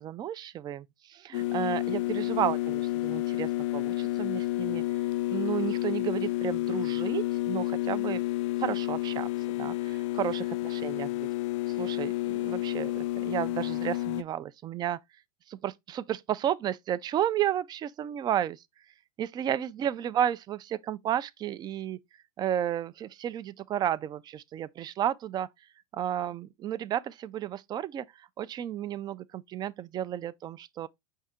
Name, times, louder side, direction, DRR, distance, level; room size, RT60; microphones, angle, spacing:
voice 1, 0.0-4.8 5.3-8.2 8.6-9.3 9.6-11.3 11.8-15.0 15.5-18.6 19.2-22.0 22.4-25.5 25.9-28.0 28.4-30.9, right 11 dB, 25° right, 0.3 m, -32 dB
sound 1, 1.3-14.2, left 17 dB, 55° left, 0.4 m, -30 dB
5.4 x 2.7 x 3.5 m
hypercardioid pair, 100°, 18 cm